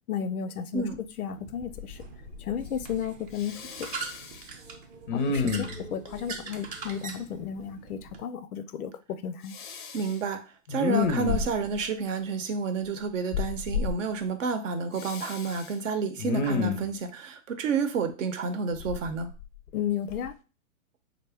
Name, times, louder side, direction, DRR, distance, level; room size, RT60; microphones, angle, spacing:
voice 1, 0.1-0.8 1.2-2.0 2.4-3.9 5.1-9.5 19.7-20.3, left 8 dB, 90° left, 0.6 m, -33 dB
Respiratory sounds, 0.9-1.0 1.5-2.0 2.3-3.0 3.4-4.4 5.1-5.9 9.5-10.1 10.7-11.8 13.3-13.9 15.0-15.7 16.2-16.9 18.8-19.7 20.1-20.3, left 5 dB, 35° left, 0.4 m, -30 dB
sound 1, 1.3-8.2, right 4 dB, 30° right, 0.6 m, -42 dB
voice 2, 9.9-19.3, right 5 dB, 60° right, 0.8 m, -30 dB
3.7 x 2.2 x 3.3 m
hypercardioid pair, 135°, 43 cm